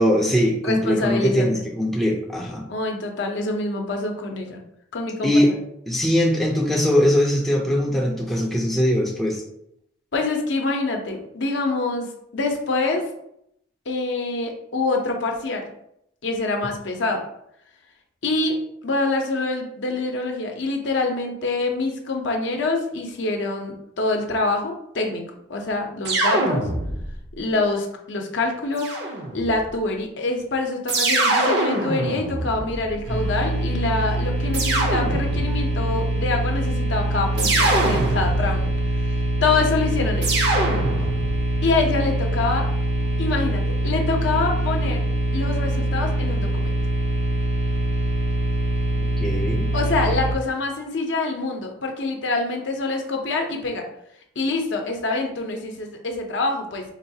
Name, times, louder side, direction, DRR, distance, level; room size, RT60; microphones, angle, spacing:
voice 1, 0.0-2.6 5.2-5.5 5.9-9.4 49.2-49.7, equal, ahead, -2 dB, 0.4 m, -21 dB
voice 2, 0.6-1.6 2.7-4.6 4.9-5.5 10.1-12.1 12.3-13.0 13.9-15.7 16.2-17.2 18.2-18.6 18.8-25.2 25.5-26.6 27.4-29.0 29.3-38.7 39.0-40.4 41.6-42.6 43.0-45.0 45.3-46.8 49.7-53.8 54.4-56.8, left 3 dB, 65° left, 3 dB, 0.6 m, -25 dB
sound 1, 26.0-27.3 28.8-29.6 30.9-33.2 34.5-35.7 37.4-38.7 40.2-41.4, right 2 dB, 55° right, 0.6 m, -23 dB
sound 2, 33.1-50.3, right 1 dB, 75° right, 1.0 m, -24 dB
4.0 x 2.3 x 2.7 m, 0.75 s
head